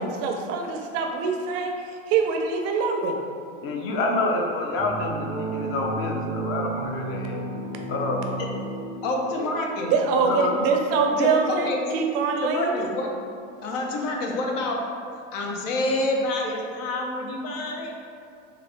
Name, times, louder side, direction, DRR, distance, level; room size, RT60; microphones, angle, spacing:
voice 1, 0.0-1.7 2.1-3.2 9.8-12.9, right 4 dB, 40° right, 2 dB, 0.4 m, -24 dB
voice 2, 3.6-7.4 7.9-8.3 10.3-10.5, left 2 dB, 35° left, 1 dB, 0.5 m, -27 dB
sound 1, 4.7-9.3, right 2 dB, 5° left, 0.8 m, -32 dB
voice 3, 9.0-9.9 11.2-11.8 12.4-13.2 13.6-14.8 15.3-17.9, left 2 dB, 75° left, 0 dB, 0.7 m, -27 dB
3.3 x 2.4 x 3.3 m, 2.4 s
supercardioid pair, 120°, 38 cm